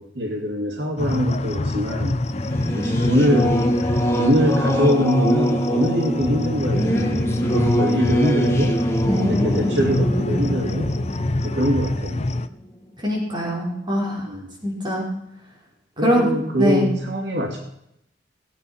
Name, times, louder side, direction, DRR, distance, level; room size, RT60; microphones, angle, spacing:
voice 1, 0.0-2.2 2.7-3.6 4.2-7.2 7.5-8.8 9.2-10.9 11.4-12.3 14.2-14.5 16.0-17.6, equal, 85° right, 1 dB, 2.5 m, -23 dB
sound 1, 1.0-12.5, left 2 dB, 40° left, 0.6 m, -26 dB
Singing / Musical instrument, 2.3-12.4, equal, 15° left, 1.5 m, -23 dB
voice 2, 13.0-14.3 14.6-15.1 16.0-16.3 16.6-16.9, equal, 25° right, -4 dB, 5.3 m, -22 dB
17.5 x 8.7 x 5.6 m, 0.78 s
head